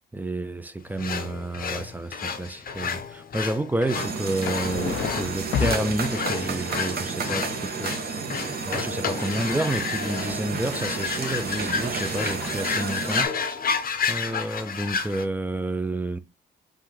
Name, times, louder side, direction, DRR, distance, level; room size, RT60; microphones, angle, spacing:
voice 1, 0.1-8.2 8.6-13.3 14.1-16.2, right 2 dB, 10° right, 0.5 m, -30 dB
sound 1, 1.0-15.3, left 6 dB, 45° left, 0.7 m, -31 dB
sound 2, 3.9-13.2, right 5 dB, 50° right, 0.9 m, -31 dB
sound 3, 4.4-6.6 9.5-12.7 14.5-14.6 14.8-15.0, left 7 dB, 85° left, 0.5 m, -34 dB
5.4 x 2.6 x 3.2 m
cardioid pair, 90°, 20 cm